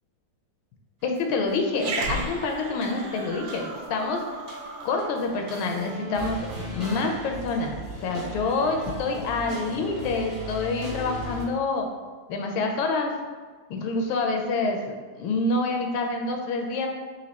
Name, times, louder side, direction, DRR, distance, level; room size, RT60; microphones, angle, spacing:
voice 1, 1.0-4.2 4.8-6.5 6.7-11.9 12.3-13.1 13.7-16.9, left 3 dB, 80° left, 3 dB, 1.3 m, -27 dB
sound 1, 1.1-1.3 1.8-2.3 2.6-4.0 4.3-11.5, equal, 55° right, 0.5 m, -37 dB
Growling, 1.7-6.4, right 3 dB, 75° right, 1.5 m, -35 dB
4.3 x 2.6 x 4.0 m, 1.4 s
omnidirectional pair, 2.3 m